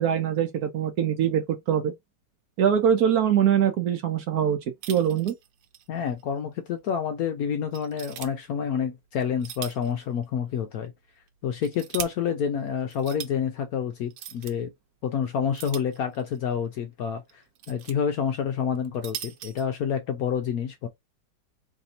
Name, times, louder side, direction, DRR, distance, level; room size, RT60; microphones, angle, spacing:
voice 1, 0.0-1.9 2.6-4.6 4.9-5.3, right 9 dB, 65° right, 1.0 m, -23 dB
sound 1, 4.8-5.9 6.2-6.3 6.9-7.0 7.7-8.3 9.2-9.9 10.2-10.3 11.3-12.1 12.9-13.3 14.1-14.5 15.6-16.4 17.3-17.9 18.8-19.6, right 10 dB, 85° right, 1.4 m, -39 dB
voice 2, 5.9-10.9 11.4-14.7 15.0-20.9, left 7 dB, 70° left, 0.9 m, -28 dB
3.3 x 2.6 x 4.0 m
omnidirectional pair, 2.0 m